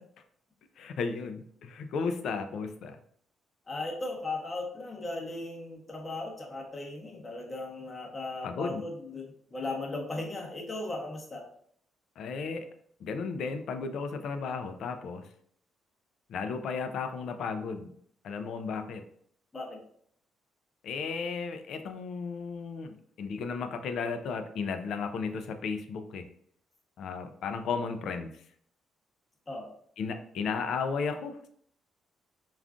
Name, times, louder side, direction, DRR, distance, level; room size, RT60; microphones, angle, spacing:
voice 1, 0.8-3.0 8.4-8.8 12.2-12.7 13.0-15.2 16.3-17.9 18.2-19.0 20.8-26.3 27.0-28.3 30.0-31.5, left 5 dB, 70° left, 8 dB, 0.4 m, -34 dB
voice 2, 3.7-11.5 19.5-19.8 29.5-29.7, left 2 dB, 25° left, 0 dB, 0.8 m, -37 dB
3.6 x 2.3 x 2.3 m, 0.63 s
cardioid pair, 90°, 0 cm